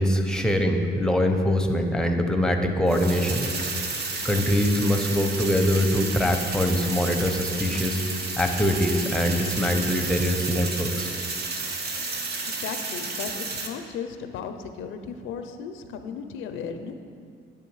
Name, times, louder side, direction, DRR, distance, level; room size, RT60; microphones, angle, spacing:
voice 1, 0.0-3.5 4.2-8.0 8.4-11.1, left 1 dB, 5° left, 4 dB, 0.6 m, -23 dB
sound 1, 2.9-13.7, right 3 dB, 55° right, 0.8 m, -31 dB
voice 2, 12.4-16.9, left 6 dB, 85° left, 7 dB, 0.4 m, -35 dB
9.4 x 3.5 x 4.6 m, 2.2 s
cardioid pair, 90°, 20 cm